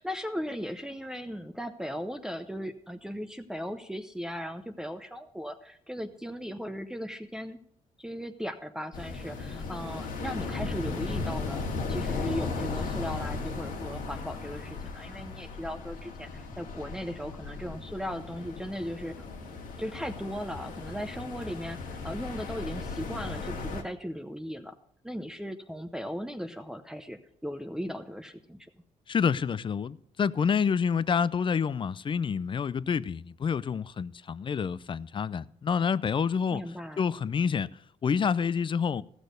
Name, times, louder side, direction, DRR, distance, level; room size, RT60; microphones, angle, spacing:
voice 1, 0.0-7.6 8.0-19.3 19.8-24.7 25.0-28.7 36.5-37.0, equal, 5° right, 0.8 m, -37 dB
sound 1, 8.9-23.8, left 4 dB, 80° left, 1.9 m, -36 dB
voice 2, 29.1-36.6 37.0-37.7 38.0-39.0, left 6 dB, 35° left, 0.5 m, -28 dB
15.0 x 6.2 x 6.6 m
cardioid pair, 85°, 14 cm